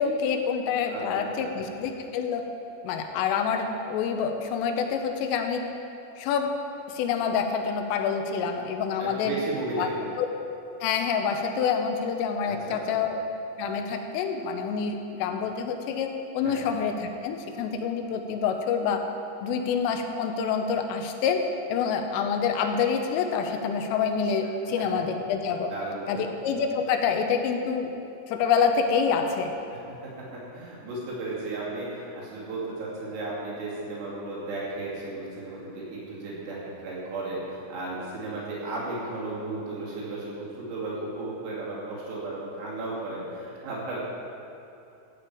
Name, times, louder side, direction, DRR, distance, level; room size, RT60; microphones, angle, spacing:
voice 1, 0.0-2.4 2.8-5.6 6.2-6.5 6.9-9.4 9.8-9.9 10.2-10.3 10.8-13.2 13.6-19.0 19.4-21.4 21.7-25.7 26.1-27.9 28.3-29.5, left 6 dB, 85° left, 5 dB, 3.3 m, -27 dB
voice 2, 0.9-1.6 9.0-10.1 12.4-13.0 16.4-16.6 24.8-24.9 25.7-26.3 29.7-44.1, right 2 dB, 85° right, -6 dB, 5.4 m, -35 dB
15.0 x 8.5 x 4.9 m, 2.8 s
omnidirectional pair, 5.9 m